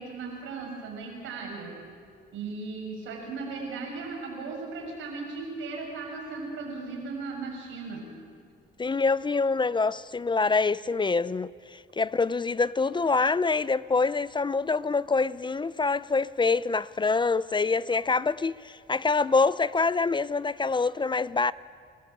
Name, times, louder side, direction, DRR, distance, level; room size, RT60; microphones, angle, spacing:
voice 1, 0.0-1.7 2.3-8.1, right 4 dB, 90° right, 7.4 m, -37 dB
voice 2, 8.8-21.5, left 4 dB, 25° left, 0.5 m, -25 dB
28.5 x 15.0 x 8.7 m
cardioid pair, 90°, 20 cm